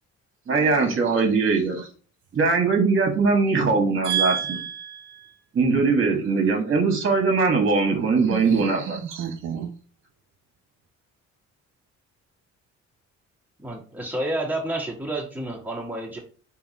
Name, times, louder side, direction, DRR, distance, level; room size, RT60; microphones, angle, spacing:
voice 1, 0.5-1.9 2.3-4.6 5.5-9.3, right 4 dB, 40° right, 4 dB, 1.5 m, -21 dB
voice 2, 4.0-5.4 8.3-9.7, right 8 dB, 85° right, 0 dB, 0.7 m, -30 dB
voice 3, 13.6-16.2, right 1 dB, 5° right, -2 dB, 1.7 m, -30 dB
3.6 x 2.9 x 4.1 m, 0.39 s
cardioid pair, 90°, 30 cm